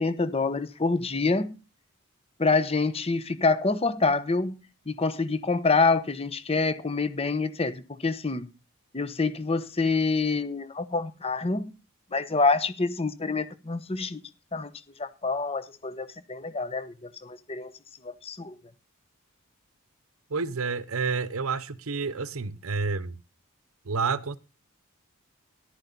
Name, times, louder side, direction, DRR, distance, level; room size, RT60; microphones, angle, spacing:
voice 1, 0.0-1.5 2.4-4.6 4.9-8.5 8.9-11.7 12.1-14.2 14.5-14.7 15.0-17.7 18.0-18.6, left 3 dB, 25° left, 0.9 m, -26 dB
voice 2, 20.3-23.2 23.8-24.4, right 4 dB, 70° right, 0.8 m, -29 dB
13.5 x 12.0 x 4.0 m
head